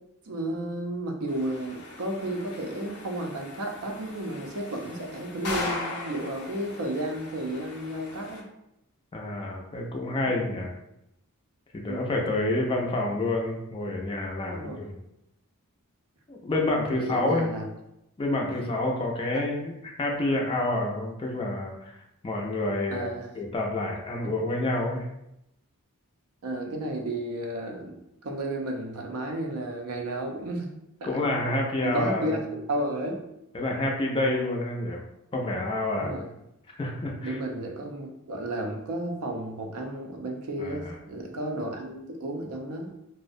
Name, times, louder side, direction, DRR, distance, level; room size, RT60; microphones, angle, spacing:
voice 1, 0.3-8.4 10.3-10.4 11.9-12.1 14.5-14.8 16.8-17.6 19.3-19.4 22.9-23.3 24.2-24.3 26.4-30.7 31.0-31.2 31.8-32.4 32.7-33.2 36.0-36.3 37.2-42.9, right 1 dB, 80° right, 2 dB, 0.5 m, -33 dB
sound 1, 1.3-8.4, left 2 dB, 85° left, 0.7 m, -39 dB
voice 2, 9.1-10.7 11.7-15.0 16.3-17.5 18.2-19.7 20.0-22.0 22.2-25.1 31.0-32.4 33.5-35.0 35.3-36.3 36.8-37.4 40.6-40.9, left 2 dB, 25° left, -1 dB, 0.3 m, -28 dB
2.4 x 2.0 x 2.6 m, 0.84 s
head